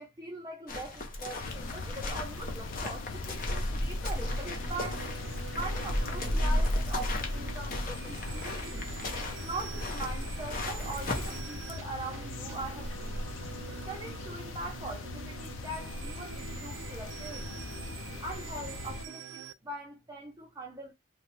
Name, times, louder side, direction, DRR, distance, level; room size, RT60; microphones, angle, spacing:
voice 1, 0.0-5.1 5.5-8.8 9.4-13.2 13.7-17.7 18.2-20.9, right 2 dB, 15° right, 0.6 m, -42 dB
sound 1, 0.7-11.4, left 1 dB, 45° left, 0.7 m, -34 dB
sound 2, 1.4-19.1, left 3 dB, 70° left, 0.4 m, -40 dB
sound 3, 4.0-19.5, right 8 dB, 60° right, 0.3 m, -46 dB
2.9 x 2.3 x 3.2 m
head